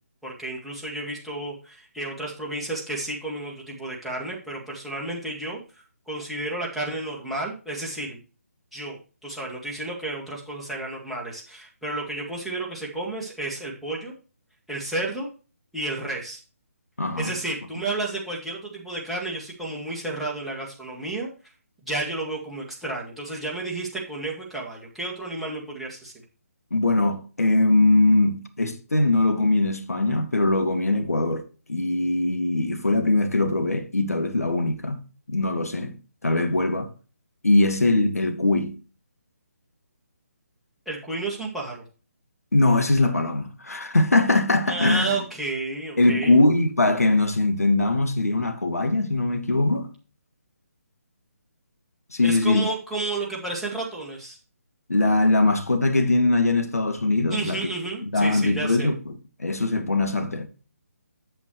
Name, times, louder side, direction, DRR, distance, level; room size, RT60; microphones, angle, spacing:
voice 1, 0.2-5.6 6.1-8.2 8.7-14.1 14.7-15.3 15.7-16.4 17.2-21.3 21.8-26.1 40.9-41.8 44.7-46.4 52.2-54.4 57.3-58.9, right 2 dB, ahead, 2.0 m, -31 dB
voice 2, 17.0-17.3 26.7-35.9 36.2-36.9 37.4-38.8 42.5-45.2 46.0-49.9 52.1-52.6 54.9-57.7 58.1-60.5, left 2 dB, 70° left, 1.4 m, -21 dB
8.6 x 8.1 x 3.1 m
figure-of-eight pair, 145°, 8 cm